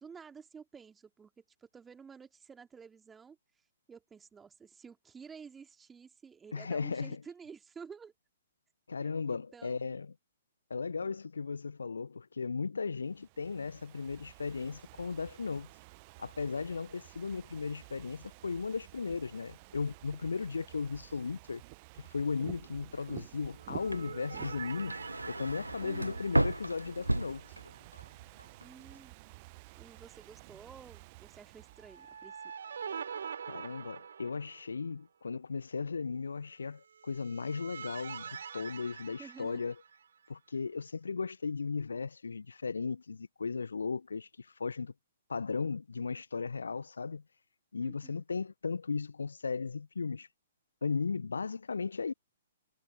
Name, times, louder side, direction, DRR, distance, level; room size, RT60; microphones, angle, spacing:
voice 1, 0.0-3.4 3.9-8.1 9.0-10.0 25.8-26.2 28.6-29.1 29.7-32.5 39.2-39.6 47.8-48.2, right 6 dB, 10° right, 2.8 m, -52 dB
voice 2, 6.5-7.2 8.9-10.1 10.7-15.7 16.2-21.6 22.0-25.0 25.3-27.4 33.5-39.7 40.3-44.9 45.3-47.2 47.7-50.3 50.8-52.1, left 5 dB, 70° left, 1.1 m, -36 dB
Ocean / Fireworks, 13.0-32.3, right 26 dB, 35° right, 1.0 m, -52 dB
sound 1, 23.6-27.9 28.2-28.3 31.8-34.9 37.0-40.3, right 7 dB, 60° right, 6.3 m, -45 dB
sound 2, 23.8-28.1 28.4-29.0, right 1 dB, 85° right, 0.3 m, -34 dB
figure-of-eight pair, 120°, 0 cm